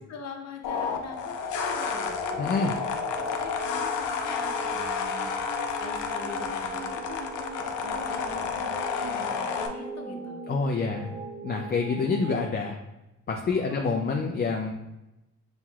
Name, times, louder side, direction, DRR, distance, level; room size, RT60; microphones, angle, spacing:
voice 1, 0.1-2.8 3.2-5.3 5.8-8.7 9.1-10.4 10.8-11.1 13.5-13.9 14.3-14.4, left 4 dB, 60° left, 2 dB, 0.9 m, -43 dB
sound 1, 0.6-9.7, left 6 dB, 80° left, 0.6 m, -31 dB
sound 2, 1.5-12.5, right 2 dB, 65° right, 0.9 m, -39 dB
voice 2, 2.4-2.7 10.5-11.1 11.4-12.7 13.3-14.7, left 4 dB, 35° left, 1 dB, 0.4 m, -27 dB
5.6 x 3.0 x 2.4 m, 0.96 s
cardioid pair, 90°, 30 cm